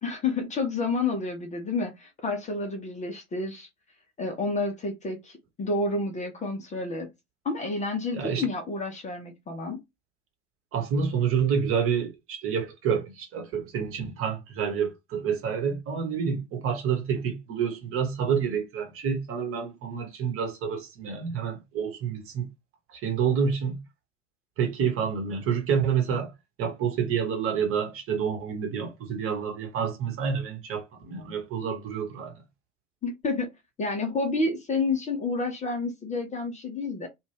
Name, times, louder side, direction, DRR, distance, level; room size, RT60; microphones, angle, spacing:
voice 1, 0.0-3.7 4.2-7.1 7.4-9.8 33.0-33.5 33.8-37.1, left 3 dB, 20° left, 0.7 m, -29 dB
voice 2, 8.1-8.4 10.7-22.5 22.9-23.8 24.6-26.3 26.6-32.4, right 7 dB, 35° right, 1.1 m, -28 dB
2.5 x 2.3 x 3.3 m
figure-of-eight pair, 75°, 38 cm